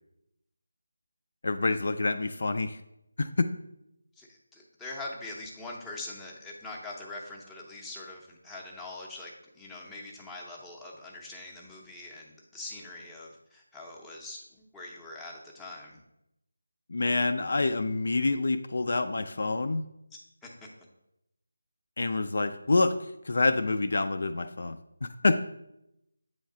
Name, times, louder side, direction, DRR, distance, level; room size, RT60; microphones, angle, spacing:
voice 1, 1.4-2.8 3.2-3.5 16.9-19.9 22.0-25.4, left 3 dB, 55° left, 9 dB, 0.3 m, -27 dB
voice 2, 4.2-16.0 20.4-20.5, left 2 dB, 5° left, -3 dB, 0.6 m, -43 dB
8.4 x 3.1 x 3.7 m, 0.84 s
figure-of-eight pair, 170°, 0 cm